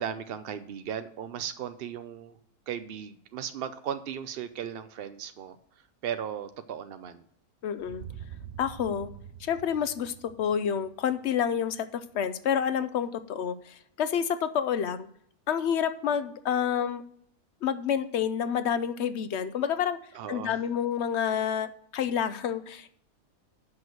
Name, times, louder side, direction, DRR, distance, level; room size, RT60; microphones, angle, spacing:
voice 1, 0.0-2.4 2.7-5.6 6.0-7.2 20.1-20.6, right 9 dB, 75° right, 10 dB, 0.5 m, -36 dB
voice 2, 7.6-8.0 8.6-9.1 9.4-15.1 15.5-17.0 17.6-20.0 20.3-22.9, left 8 dB, 60° left, 12 dB, 0.7 m, -29 dB
sound 1, 7.8-11.8, right 9 dB, 60° right, 0.9 m, -46 dB
7.5 x 6.1 x 7.8 m, 0.65 s
omnidirectional pair, 1.6 m